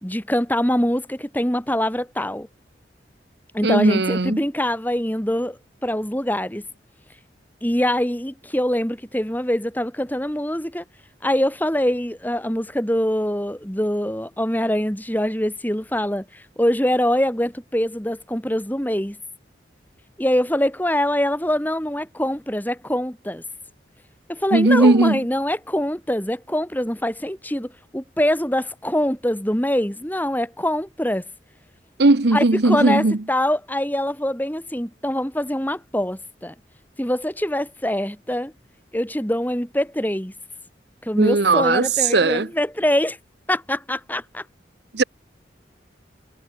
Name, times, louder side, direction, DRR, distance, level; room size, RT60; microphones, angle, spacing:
voice 1, 0.0-2.5 3.5-5.6 5.8-6.6 7.6-10.8 11.2-19.2 20.2-23.4 24.3-31.2 32.3-36.5 37.0-38.5 38.9-40.3 41.0-43.2 43.5-44.4, left 1 dB, 10° left, 3.2 m, -24 dB
voice 2, 3.6-4.4 24.5-25.2 32.0-33.2 41.2-42.5 44.9-45.0, right 3 dB, 60° right, 0.9 m, -17 dB
head